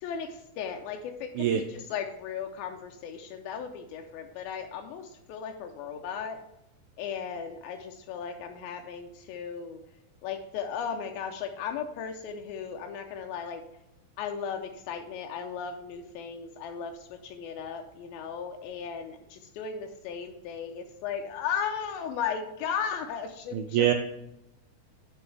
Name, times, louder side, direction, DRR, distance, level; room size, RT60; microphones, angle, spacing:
voice 1, 0.0-6.4 7.0-9.8 10.2-13.6 14.2-23.9, left 7 dB, 85° left, 4 dB, 2.5 m, -36 dB
voice 2, 23.5-23.9, right 10 dB, 90° right, 5 dB, 1.7 m, -24 dB
9.2 x 6.1 x 3.3 m, 0.85 s
omnidirectional pair, 4.2 m